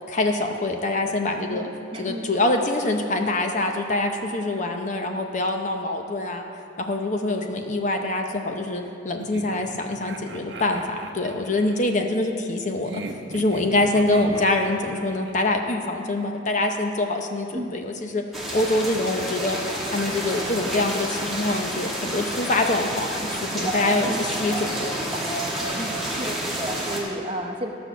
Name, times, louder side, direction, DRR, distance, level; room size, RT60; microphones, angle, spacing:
voice 1, 0.1-1.7 2.0-6.5 6.8-13.0 13.3-18.2 18.5-19.6 19.8-24.9, left 2 dB, 40° left, 4 dB, 0.7 m, -25 dB
voice 2, 1.5-2.3 17.5-17.8 23.9-24.3 25.8-27.7, right 1 dB, 30° right, 2 dB, 0.8 m, -33 dB
Sinister Laughs, 9.2-11.9 12.8-15.4, right 2 dB, 60° right, 0.8 m, -39 dB
sound 1, 18.3-27.0, right 1 dB, ahead, 1.6 m, -29 dB
13.0 x 6.0 x 6.9 m, 2.6 s
head